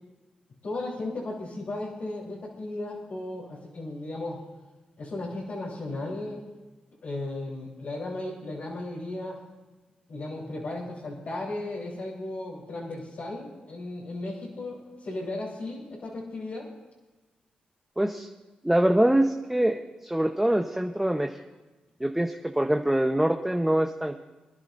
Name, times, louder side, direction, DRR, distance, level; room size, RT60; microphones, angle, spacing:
voice 1, 0.6-4.4 5.0-6.4 7.0-9.4 10.1-16.7, left 2 dB, 70° left, -8 dB, 3.7 m, -35 dB
voice 2, 18.0-18.3 18.6-21.4 22.0-24.2, right 1 dB, 10° right, 4 dB, 0.9 m, -24 dB
24.5 x 10.5 x 2.6 m, 1.1 s
supercardioid pair, 45°, 3 cm